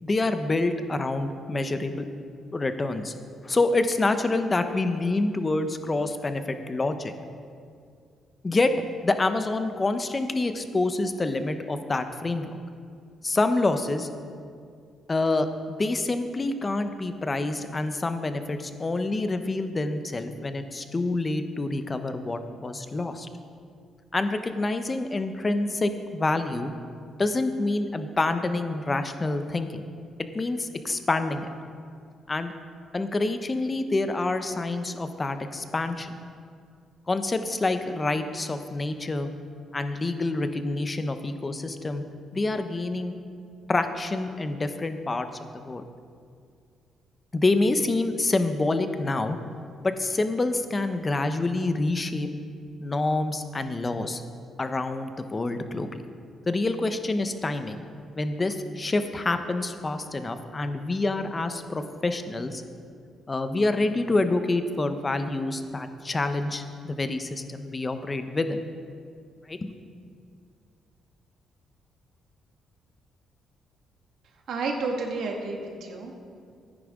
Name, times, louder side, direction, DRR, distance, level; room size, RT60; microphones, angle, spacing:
voice 1, 0.0-2.1 2.5-3.1 3.4-7.1 8.4-8.7 9.0-12.4 13.2-14.1 15.1-23.3 24.1-26.7 27.2-29.9 30.3-31.5 32.3-32.5 32.9-36.2 37.1-39.3 39.7-42.0 42.3-43.2 43.7-45.3 45.5-45.8 47.3-49.4 49.8-52.3 52.8-54.2 54.6-56.0 56.5-57.8 58.2-62.6 63.3-68.6 69.5-69.7, left 2 dB, 25° left, 9 dB, 0.8 m, -27 dB
voice 2, 74.5-76.1, right 3 dB, 70° right, 1 dB, 1.7 m, -30 dB
14.0 x 10.0 x 3.7 m, 2.3 s
cardioid pair, 90°, 0 cm